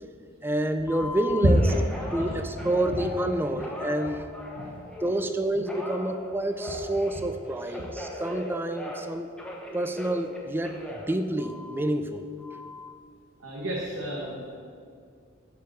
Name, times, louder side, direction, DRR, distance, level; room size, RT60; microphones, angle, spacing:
voice 1, 0.4-1.6 2.1-4.3 5.0-9.3 9.7-12.3, right 1 dB, 10° right, 8 dB, 0.4 m, -28 dB
Telephone, 0.9-5.2 5.7-9.1 9.4-11.9 12.4-12.9, left 1 dB, 5° left, 1.0 m, -39 dB
voice 2, 2.2-2.7 4.6-4.7 13.4-14.6, right 1 dB, 80° right, -3 dB, 1.2 m, -34 dB
6.9 x 5.0 x 6.2 m, 2.2 s
head